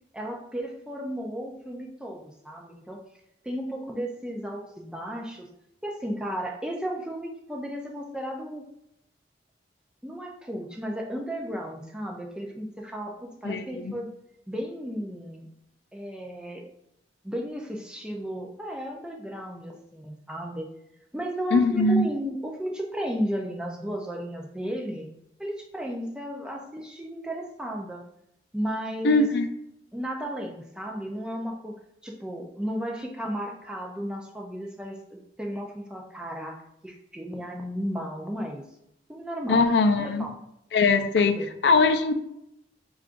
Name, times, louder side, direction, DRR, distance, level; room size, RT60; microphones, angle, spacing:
voice 1, 0.1-3.0 3.4-5.5 5.8-8.6 10.0-14.1 14.5-15.5 15.9-16.6 17.2-20.7 21.1-25.1 25.4-28.0 28.5-29.3 29.9-31.7 32.0-36.6 36.8-38.6 39.1-39.7 40.0-40.3 41.4-41.5, equal, 5° right, 0 dB, 0.4 m, -34 dB
voice 2, 13.4-13.9 21.5-22.1 29.0-29.5 39.5-40.2 40.7-42.1, left 3 dB, 70° left, 7 dB, 0.4 m, -21 dB
5.9 x 2.4 x 2.5 m, 0.79 s
head